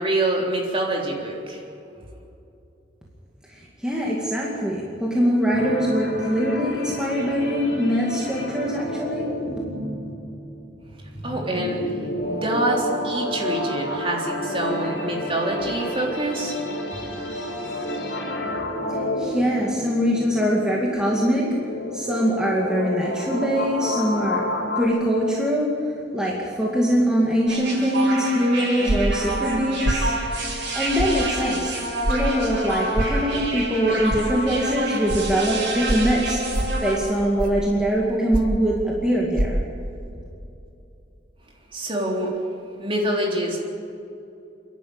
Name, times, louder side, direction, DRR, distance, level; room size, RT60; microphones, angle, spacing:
voice 1, 0.0-1.6 11.2-11.8 12.3-16.6 41.7-42.4 42.8-43.6, right 1 dB, 30° right, -1 dB, 3.5 m, -25 dB
voice 2, 3.5-9.3 18.9-21.5 21.9-24.4 24.8-25.7 26.1-30.2 30.5-31.7 32.1-39.6, equal, 5° right, -4 dB, 2.3 m, -23 dB
sound 1, 5.5-24.9, left 1 dB, 65° left, 4.1 m, -30 dB
sound 2, 27.5-37.0, right 2 dB, 75° right, 6.6 m, -29 dB
sound 3, 28.9-29.2 29.8-30.1 31.0-31.2 32.0-32.2 32.9-33.2 34.1-34.2 35.1-35.2 35.9-36.1 36.5-36.8 37.4-37.7 38.3-38.6 39.3-39.5, right 1 dB, 50° right, 1.9 m, -24 dB
28.0 x 11.5 x 8.8 m, 2.7 s
head